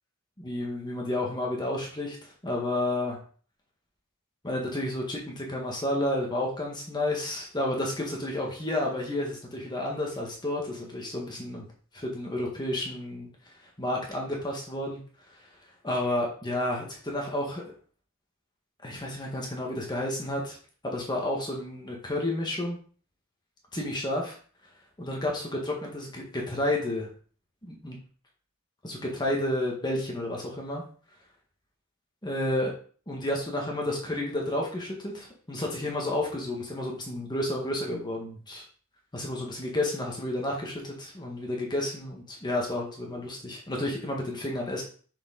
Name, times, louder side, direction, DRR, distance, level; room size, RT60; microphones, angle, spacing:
voice 1, 0.4-3.2 4.4-11.7 11.9-13.3 13.8-15.0 15.8-17.6 18.8-20.6 20.8-22.8 23.7-24.4 25.0-27.1 27.6-28.0 28.8-30.8 32.2-32.7 33.1-38.6 39.1-44.8, left 1 dB, 20° left, -1 dB, 1.6 m, -31 dB
6.9 x 5.0 x 3.9 m, 0.42 s
head